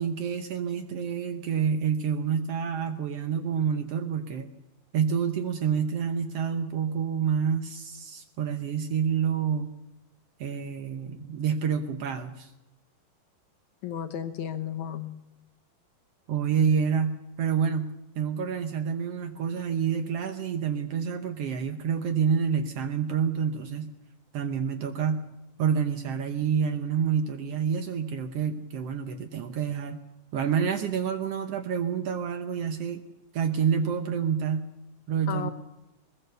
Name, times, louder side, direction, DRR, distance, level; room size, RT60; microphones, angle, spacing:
voice 1, 0.0-4.5 4.9-9.7 10.4-12.5 16.3-23.9 24.3-25.2 25.6-30.0 30.3-33.0 33.3-34.7 35.1-35.5, right 7 dB, 90° right, 7 dB, 1.3 m, -28 dB
voice 2, 13.8-15.1 35.3-35.5, left 10 dB, 70° left, 6 dB, 2.0 m, -33 dB
21.5 x 20.0 x 6.7 m, 0.96 s
omnidirectional pair, 4.2 m